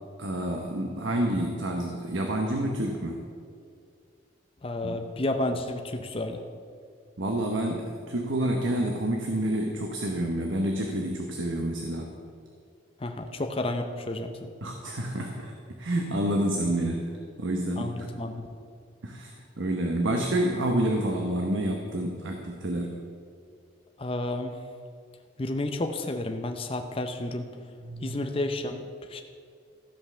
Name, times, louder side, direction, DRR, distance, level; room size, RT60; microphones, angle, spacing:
voice 1, 0.2-3.2 4.8-5.0 7.2-12.1 14.6-15.5 15.8-17.1 17.4-18.1 19.0-23.0 27.8-28.2, right 1 dB, 75° right, 2 dB, 1.0 m, -28 dB
voice 2, 4.6-6.4 13.0-14.5 17.8-18.5 24.0-24.5 25.4-27.5 28.0-29.2, left 2 dB, 30° left, 5 dB, 0.6 m, -31 dB
14.5 x 5.4 x 6.9 m, 2.2 s
head